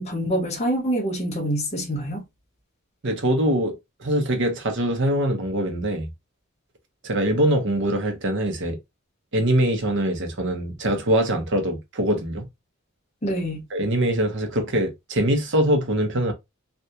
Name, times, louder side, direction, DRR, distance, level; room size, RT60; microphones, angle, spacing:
voice 1, 0.0-2.2 13.2-13.6, equal, 30° left, 0.9 m, -26 dB
voice 2, 3.0-6.1 7.0-8.8 9.3-12.5 13.7-16.3, right 1 dB, 60° right, 0.9 m, -23 dB
3.4 x 2.4 x 2.8 m
head